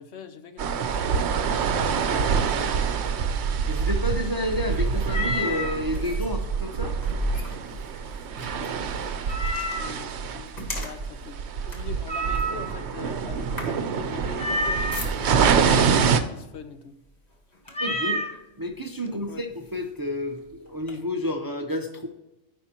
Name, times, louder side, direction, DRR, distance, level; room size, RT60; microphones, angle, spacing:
voice 1, 0.0-1.4 2.0-2.8 8.4-9.2 9.8-17.0 19.0-19.4, left 6 dB, 65° left, 9 dB, 1.0 m, -43 dB
sound 1, 0.6-16.2, right 6 dB, 70° right, 0.9 m, -26 dB
sound 2, 2.8-15.6 16.5-16.7 17.1-18.1 18.7-18.8 19.3-20.9, equal, 35° left, 1.5 m, -38 dB
voice 2, 3.7-7.0 17.8-18.2 18.6-22.1, left 1 dB, 25° right, 3 dB, 0.6 m, -30 dB
Meow, 5.1-5.8 9.3-10.1 12.1-12.9 14.4-15.1 17.7-18.4, equal, 5° left, 0.8 m, -29 dB
14.0 x 5.4 x 2.9 m, 0.93 s
omnidirectional pair, 1.2 m